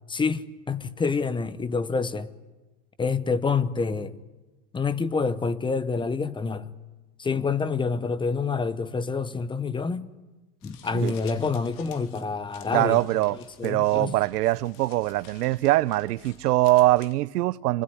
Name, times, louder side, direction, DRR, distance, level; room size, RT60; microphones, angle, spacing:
voice 1, 0.1-2.3 3.0-4.2 4.7-6.7 7.2-10.1 10.6-13.1 13.3-14.1, left 4 dB, 10° left, 0.8 m, -27 dB
sound 1, 10.6-17.1, left 8 dB, 45° left, 2.7 m, -52 dB
voice 2, 12.7-13.4 13.6-17.8, right 17 dB, 80° right, 0.8 m, -23 dB
26.0 x 20.5 x 10.0 m
supercardioid pair, 125°, 46 cm